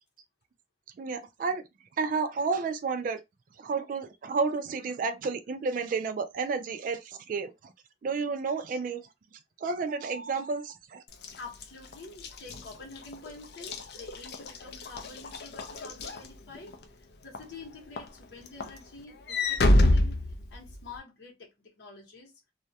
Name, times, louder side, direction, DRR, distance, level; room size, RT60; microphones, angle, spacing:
voice 1, 1.0-1.6 2.0-3.2 3.6-7.7 8.0-9.1 9.6-11.0, right 4 dB, 50° right, 0.3 m, -31 dB
Walk footsteps / Slam, 11.1-16.8 17.3-17.6 18.0-21.0, left 1 dB, 60° left, 0.4 m, -28 dB
voice 2, 11.4-16.8 17.2-20.2 20.5-22.3, left 3 dB, 75° left, 0.9 m, -47 dB
2.2 x 2.1 x 2.7 m
head